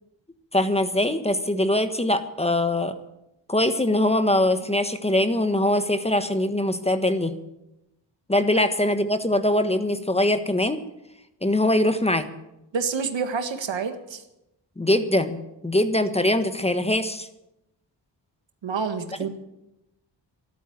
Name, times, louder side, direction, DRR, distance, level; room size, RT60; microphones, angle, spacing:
voice 1, 0.5-3.0 3.5-7.3 8.3-10.8 11.4-12.3 14.8-17.3, left 1 dB, 15° left, 10 dB, 1.3 m, -22 dB
voice 2, 12.7-14.2 18.6-19.4, right 5 dB, 80° right, 8 dB, 1.8 m, -28 dB
13.5 x 12.0 x 8.8 m, 0.89 s
cardioid pair, 85°, 44 cm